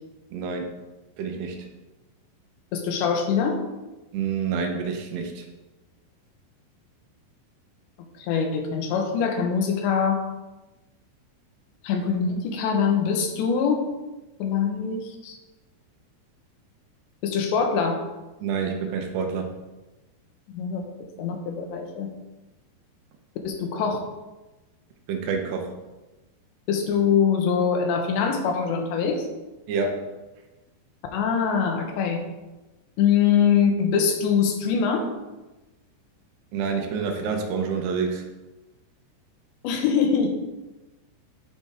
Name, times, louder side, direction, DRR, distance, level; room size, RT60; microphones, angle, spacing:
voice 1, 0.3-0.7 1.2-1.6 4.1-5.4 18.4-19.5 25.1-25.7 29.7-30.0 36.5-38.2, right 5 dB, 80° right, 4 dB, 3.2 m, -27 dB
voice 2, 2.7-3.6 8.2-10.2 11.8-14.0 14.4-15.4 17.2-18.0 20.5-20.9 21.2-22.1 23.5-24.0 26.7-29.3 31.1-32.2 33.0-35.1 39.6-40.3, left 6 dB, 85° left, 4 dB, 3.4 m, -23 dB
10.5 x 8.7 x 3.6 m, 1.1 s
omnidirectional pair, 5.0 m